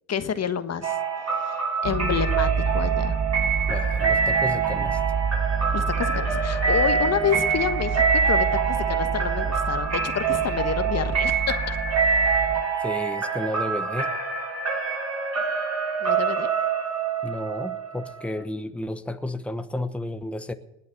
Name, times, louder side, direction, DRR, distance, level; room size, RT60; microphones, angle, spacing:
voice 1, 0.1-3.2 5.7-11.8 16.0-16.5, left 7 dB, 45° left, 1.3 m, -28 dB
sound 1, 0.8-18.4, right 5 dB, 45° right, 6.6 m, -25 dB
sound 2, 1.8-12.6, right 5 dB, 70° right, 1.3 m, -28 dB
voice 2, 3.7-5.0 12.8-14.1 17.2-20.5, left 1 dB, 5° left, 1.1 m, -32 dB
20.0 x 8.3 x 7.8 m
supercardioid pair, 75°, 35 cm